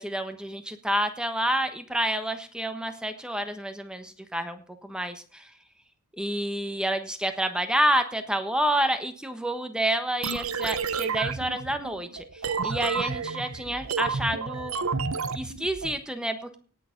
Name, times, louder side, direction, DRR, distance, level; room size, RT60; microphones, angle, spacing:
voice 1, 0.0-5.5 6.2-12.2 12.6-14.7 15.3-16.6, right 1 dB, 5° right, 7 dB, 1.2 m, -29 dB
sound 1, 10.2-15.9, right 5 dB, 65° right, 0.9 m, -31 dB
18.0 x 6.8 x 5.2 m, 0.39 s
head